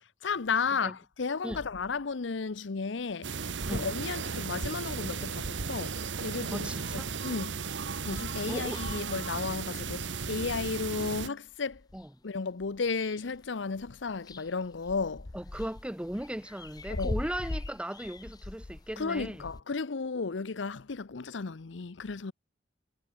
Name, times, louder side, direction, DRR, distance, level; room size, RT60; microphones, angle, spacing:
voice 1, 0.2-7.6 8.0-11.8 12.2-15.3 16.9-17.2 19.0-22.3, left 4 dB, 80° left, 0.7 m, -34 dB
sound 1, 3.2-11.3, right 5 dB, 75° right, 1.1 m, -35 dB
voice 2, 6.5-7.1 8.5-8.8 11.9-12.1 15.3-19.4, right 1 dB, 5° right, 0.9 m, -37 dB
sound 2, 6.8-7.4 7.7-7.8 8.0-12.1 12.6-13.5 13.7-19.6, left 2 dB, 20° left, 0.5 m, -42 dB
head